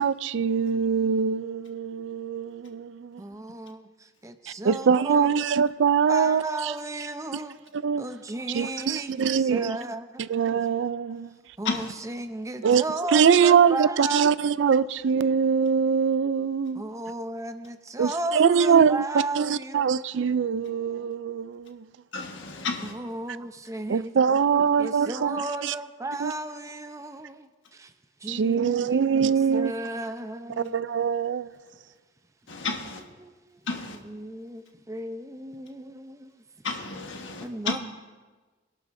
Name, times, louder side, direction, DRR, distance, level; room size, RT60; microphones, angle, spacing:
voice 1, 0.0-3.2 4.6-6.4 7.7-8.0 8.5-9.8 10.2-11.3 12.6-12.8 13.1-16.8 18.0-19.0 19.4-21.9 23.9-25.7 26.2-26.3 28.3-29.7 30.6-31.5, right 6 dB, 70° right, 0.4 m, -23 dB
voice 2, 0.7-1.0 3.2-5.6 6.1-7.5 8.0-10.3 11.6-14.3 16.7-20.1 20.7-21.1 22.8-27.9 28.2-30.8 32.7-32.8 33.2-33.7 33.9-36.3 37.4-37.8, right 2 dB, 15° right, 0.6 m, -35 dB
voice 3, 22.1-22.9 32.5-33.0 33.7-34.0 36.6-37.7, left 4 dB, 75° left, 1.5 m, -31 dB
23.0 x 11.5 x 2.6 m
head